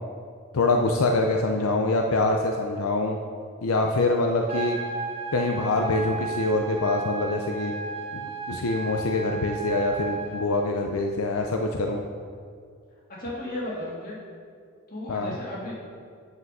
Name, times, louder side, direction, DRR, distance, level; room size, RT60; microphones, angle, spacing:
voice 1, 0.5-3.2 3.6-4.8 5.3-7.7 8.1-12.0 15.1-15.3, left 2 dB, 85° left, 3 dB, 0.5 m, -25 dB
sound 1, 4.5-10.5, right 4 dB, 25° right, 0.7 m, -34 dB
voice 2, 13.2-14.2 14.9-15.7, left 1 dB, 40° left, -5 dB, 2.2 m, -34 dB
8.1 x 5.9 x 5.4 m, 2.2 s
head